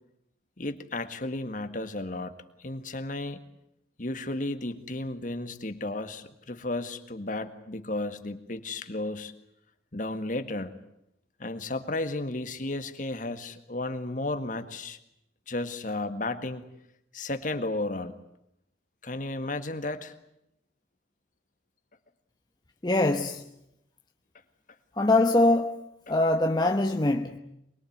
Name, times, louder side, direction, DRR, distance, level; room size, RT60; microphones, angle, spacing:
voice 1, 0.6-3.4 4.0-9.3 9.9-10.7 11.4-15.0 15.5-16.7 17.1-18.2 19.0-20.1, left 2 dB, 45° left, 1.8 m, -33 dB
voice 2, 22.8-23.4 25.0-25.7 26.1-27.4, left 2 dB, 25° left, 1.0 m, -23 dB
24.0 x 22.0 x 9.4 m
head